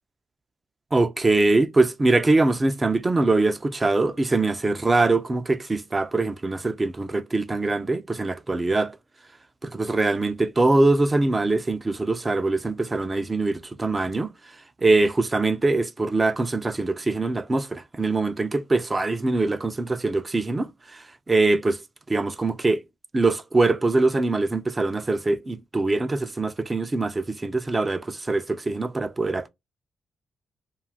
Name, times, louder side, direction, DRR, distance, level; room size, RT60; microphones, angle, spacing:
voice 1, 0.9-8.9 9.6-14.3 14.8-21.8 22.1-22.8 23.1-29.5, right 2 dB, 20° right, 0.3 m, -23 dB
2.5 x 2.3 x 3.3 m
wide cardioid pair, 150°, 0 cm